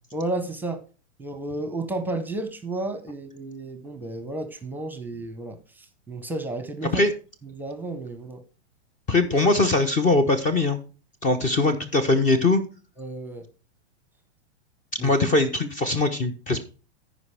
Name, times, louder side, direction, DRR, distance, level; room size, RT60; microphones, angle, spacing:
voice 1, 0.1-0.8 1.2-7.0 7.4-8.4 13.0-13.5 15.0-15.1, right 2 dB, 5° right, 1.0 m, -32 dB
voice 2, 9.1-10.8 11.2-12.6 15.0-16.6, left 2 dB, 20° left, 0.8 m, -21 dB
14.5 x 5.2 x 3.4 m
hypercardioid pair, 130°, 35 cm